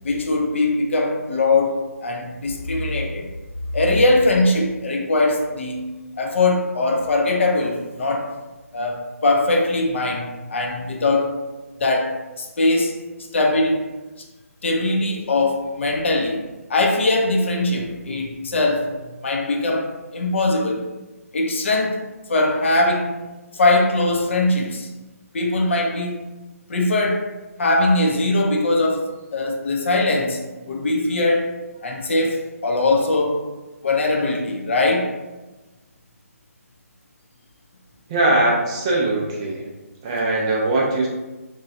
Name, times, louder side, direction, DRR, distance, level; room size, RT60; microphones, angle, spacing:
voice 1, 0.0-3.3 3.7-5.9 6.2-8.3 8.7-11.3 11.8-13.0 13.3-13.9 14.6-16.4 16.7-18.9 19.2-20.8 21.3-22.0 22.3-23.2 23.5-24.9 25.3-26.2 26.7-27.3 27.6-29.0 29.3-30.4 30.7-31.5 31.8-33.4 33.8-35.1, left 2 dB, 50° left, 2 dB, 0.5 m, -21 dB
voice 2, 38.1-39.7 40.0-41.1, right 2 dB, 20° right, -2 dB, 0.3 m, -20 dB
3.0 x 2.2 x 2.5 m, 1.1 s
figure-of-eight pair, 145°, 8 cm